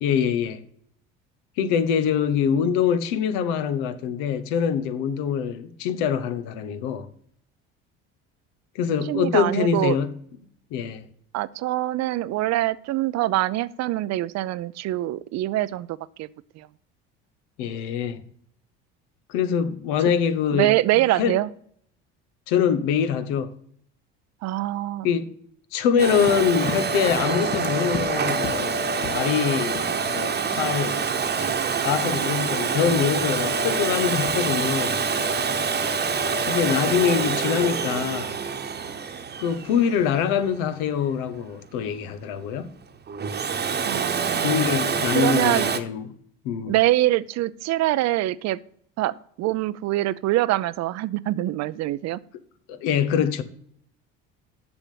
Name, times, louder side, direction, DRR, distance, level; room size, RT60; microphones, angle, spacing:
voice 1, 0.0-0.6 1.6-7.1 8.7-10.2 10.7-11.0 17.6-18.2 19.3-20.7 21.2-21.3 22.5-23.5 25.0-25.3 25.7-28.8 29.1-31.3 31.8-35.0 36.4-38.4 39.4-42.7 44.4-46.1 46.4-46.7 52.7-53.4, left 7 dB, 80° left, 1.1 m, -24 dB
voice 2, 9.1-10.0 11.3-16.3 16.5-16.7 20.5-21.5 24.4-25.1 43.8-44.6 45.1-45.7 46.7-48.6 49.0-52.2, right 15 dB, 60° right, 0.6 m, -24 dB
Domestic sounds home sounds, 26.0-40.7 43.1-45.8, right 5 dB, 35° right, 1.1 m, -26 dB
Run, 26.1-29.4 29.7-31.1 31.4-31.6, left 5 dB, 55° left, 1.7 m, -36 dB
7.0 x 6.8 x 7.5 m
supercardioid pair, 85°, 30 cm